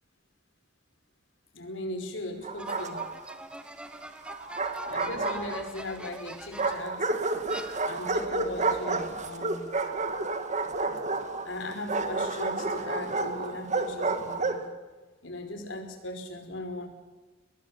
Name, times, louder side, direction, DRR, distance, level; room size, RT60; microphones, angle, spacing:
voice 1, 1.5-3.0 4.9-7.1 7.8-9.7 11.4-14.6 15.2-16.9, left 1 dB, 70° left, 5 dB, 5.1 m, -38 dB
Bark, 2.4-3.3 4.3-5.9 6.6-14.7, right 3 dB, 40° right, 2.1 m, -30 dB
sound 1, 2.6-7.0 7.5-8.3, right 1 dB, 5° right, 1.2 m, -43 dB
23.5 x 22.0 x 7.4 m, 1.3 s
head